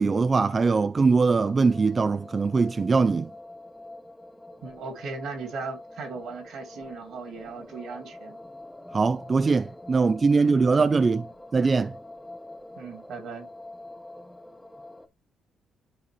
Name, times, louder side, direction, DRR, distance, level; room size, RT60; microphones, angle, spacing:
voice 1, 0.0-3.3 8.9-11.3 11.5-11.9, right 4 dB, 35° right, 0.4 m, -22 dB
sound 1, 1.4-15.1, left 1 dB, 10° left, 0.8 m, -45 dB
voice 2, 4.6-8.4 12.8-13.5, right 4 dB, 75° right, 2.2 m, -38 dB
10.5 x 4.1 x 3.0 m
cardioid pair, 90°, 0 cm